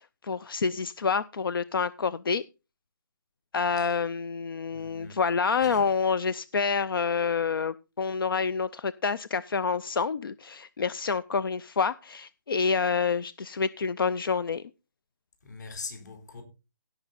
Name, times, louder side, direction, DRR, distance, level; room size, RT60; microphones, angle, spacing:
voice 1, 0.0-2.4 3.5-14.6, left 5 dB, 85° left, 0.5 m, -28 dB
voice 2, 4.7-5.2 5.5-5.9 15.4-16.4, left 4 dB, 55° left, 4.0 m, -42 dB
17.0 x 6.1 x 4.0 m
hypercardioid pair, 165°, 11 cm